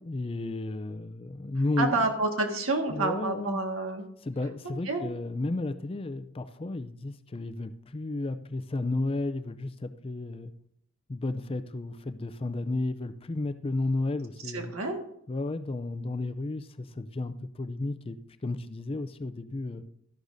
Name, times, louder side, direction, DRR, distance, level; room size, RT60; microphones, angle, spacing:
voice 1, 0.0-2.1 2.9-3.6 4.2-10.5 11.1-14.7 15.3-18.2 18.4-19.8, left 2 dB, 25° left, 11 dB, 0.4 m, -33 dB
voice 2, 1.8-4.0 4.8-5.1 14.5-15.0, right 3 dB, 75° right, 3 dB, 1.7 m, -28 dB
13.0 x 11.0 x 2.7 m, 0.71 s
head